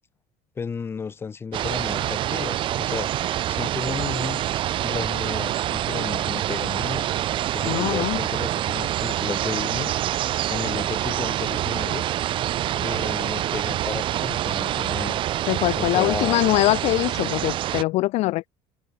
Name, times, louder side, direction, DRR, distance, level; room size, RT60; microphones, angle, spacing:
voice 1, 0.6-3.1 3.5-4.4 4.8-7.1 7.5-9.9 10.5-12.1 12.8-15.2 15.8-16.4, left 5 dB, 15° left, 1.1 m, -33 dB
sound 1, 1.5-17.8, right 12 dB, 35° right, 0.6 m, -26 dB
voice 2, 7.7-8.2 15.5-18.5, left 19 dB, 50° left, 0.5 m, -22 dB
cardioid pair, 180°, 14 cm